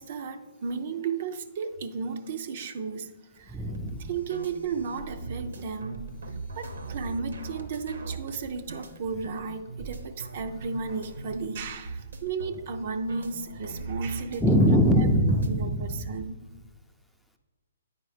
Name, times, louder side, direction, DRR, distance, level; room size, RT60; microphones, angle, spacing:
voice 1, 0.0-3.6 4.0-14.5 15.0-15.1 15.5-16.4, right 5 dB, 50° right, 8 dB, 0.5 m, -34 dB
voice 2, 3.5-4.1 14.4-16.2, equal, ahead, 3 dB, 0.5 m, -23 dB
sound 1, 3.7-15.5, right 3 dB, 75° right, 0.8 m, -40 dB
8.6 x 4.6 x 3.3 m, 1.3 s
hypercardioid pair, 135°, 0 cm